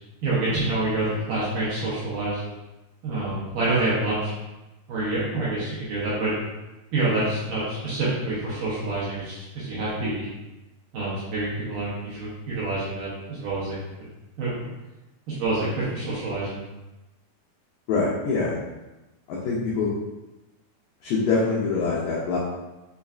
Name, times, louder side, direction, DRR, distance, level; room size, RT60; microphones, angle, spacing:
voice 1, 0.2-2.4 3.0-4.3 4.9-6.3 6.9-10.3 10.9-13.8 14.4-14.7 15.3-16.6, right 2 dB, 70° right, -9 dB, 2.1 m, -27 dB
voice 2, 17.9-18.6 19.3-19.9 21.0-22.4, left 4 dB, 90° left, -5 dB, 1.9 m, -24 dB
6.4 x 2.3 x 2.3 m, 1.0 s
omnidirectional pair, 4.7 m